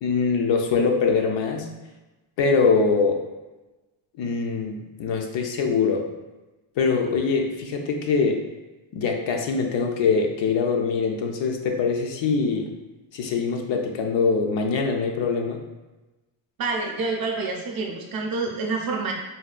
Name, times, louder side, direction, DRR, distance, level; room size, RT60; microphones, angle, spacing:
voice 1, 0.0-1.7 2.4-3.2 4.2-6.1 6.8-8.4 8.9-12.7 13.1-15.6, left 5 dB, 65° left, 3 dB, 0.5 m, -23 dB
voice 2, 16.6-19.1, right 3 dB, 45° right, 1 dB, 0.6 m, -27 dB
4.0 x 2.2 x 2.4 m, 1.1 s
cardioid pair, 140°, 49 cm